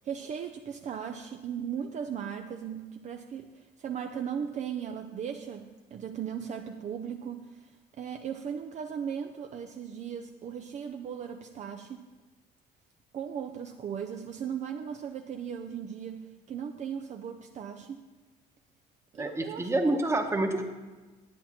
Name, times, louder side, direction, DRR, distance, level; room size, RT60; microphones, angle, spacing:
voice 1, 0.0-12.1 13.1-18.0 19.1-20.0, right 8 dB, 45° right, 5 dB, 0.5 m, -37 dB
voice 2, 19.2-20.6, right 2 dB, 15° right, 4 dB, 1.1 m, -27 dB
10.5 x 8.7 x 4.3 m, 1.2 s
cardioid pair, 110°, 17 cm